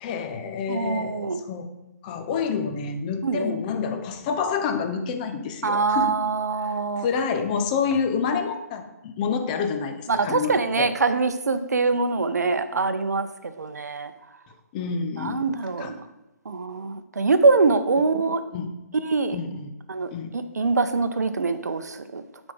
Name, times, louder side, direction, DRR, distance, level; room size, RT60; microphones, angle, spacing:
voice 1, 0.0-1.7 2.0-6.2 7.0-10.9 14.7-15.5 15.8-15.9 18.5-18.7 19.3-19.7 20.1-20.3, left 6 dB, 30° left, 6 dB, 0.6 m, -28 dB
voice 2, 0.7-1.4 3.2-3.5 5.6-7.1 10.1-14.1 15.2-16.0 16.5-18.4 18.9-19.4 19.9-22.2, right 4 dB, 80° right, 11 dB, 0.6 m, -24 dB
9.3 x 4.1 x 3.5 m, 0.99 s
hypercardioid pair, 145°, 9 cm